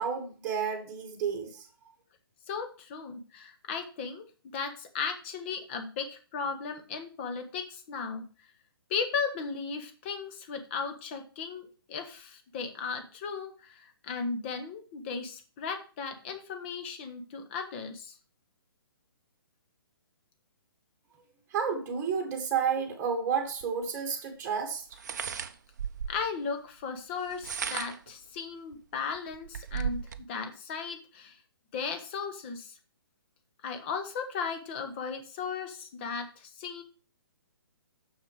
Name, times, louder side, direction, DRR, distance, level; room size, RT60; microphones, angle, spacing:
voice 1, 0.0-1.6 21.5-24.8, right 6 dB, 15° right, 1.6 m, -31 dB
voice 2, 2.5-4.2 4.5-8.3 8.9-18.1 26.1-30.0 30.3-31.4 31.7-32.8 33.6-36.8, left 5 dB, 30° left, 1.2 m, -36 dB
sound 1, 23.6-23.7 24.9-26.3 27.2-28.1 28.7-28.8 29.1-30.2, right 7 dB, 45° right, 0.6 m, -35 dB
6.6 x 6.5 x 4.9 m
figure-of-eight pair, 130°, 13 cm